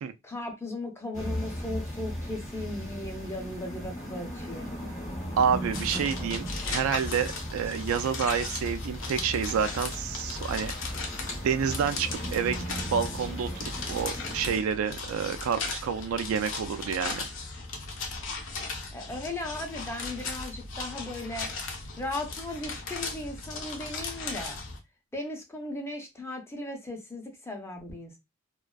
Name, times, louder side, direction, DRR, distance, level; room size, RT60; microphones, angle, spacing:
voice 1, 0.2-4.8 18.9-21.5 22.0-24.6 25.1-28.2, left 1 dB, 10° left, 0.5 m, -37 dB
sound 1, 1.1-14.6, equal, 35° left, 0.8 m, -37 dB
voice 2, 5.4-10.7 11.4-17.3, right 7 dB, 75° right, 0.3 m, -29 dB
sound 2, 5.7-24.8, left 3 dB, 65° left, 0.6 m, -37 dB
2.5 x 2.2 x 2.2 m
head